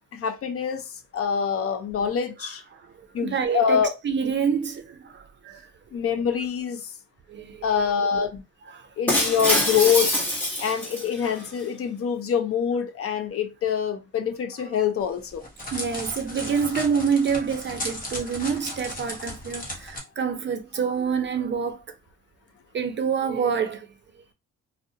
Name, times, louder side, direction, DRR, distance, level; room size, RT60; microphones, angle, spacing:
voice 1, 0.1-2.6 3.1-3.9 5.9-6.9 7.6-8.4 9.0-10.1 10.6-15.4, left 7 dB, 50° left, 0.5 m, -25 dB
voice 2, 3.0-5.7 7.3-7.6 8.7-8.9 15.7-21.8 22.7-23.9, right 6 dB, 40° right, 0.5 m, -27 dB
Shatter, 9.1-11.5, left 1 dB, 5° left, 1.0 m, -25 dB
Crackle, 15.0-20.0, left 1 dB, 30° left, 1.0 m, -36 dB
2.3 x 2.0 x 2.7 m
cardioid pair, 90°, 30 cm